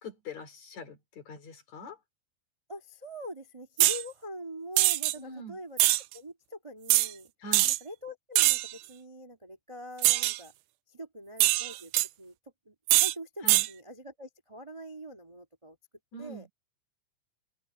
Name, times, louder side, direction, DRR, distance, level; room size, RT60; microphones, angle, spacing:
voice 1, 0.0-2.0 5.2-5.6 7.4-7.7 13.4-13.7 16.1-16.5, left 1 dB, 55° left, 5.0 m, -43 dB
voice 2, 2.7-5.9 6.1-7.3 7.6-10.5 10.9-12.3 12.6-15.8 16.2-16.5, equal, 15° right, 1.0 m, -44 dB
sound 1, 3.8-4.0 4.8-5.1 5.8-6.0 6.9-7.1 7.5-7.8 8.4-8.7 10.0-10.4 11.4-12.1 12.9-13.1 13.5-13.7, right 18 dB, 80° right, 1.9 m, -23 dB
omnidirectional pair, 4.0 m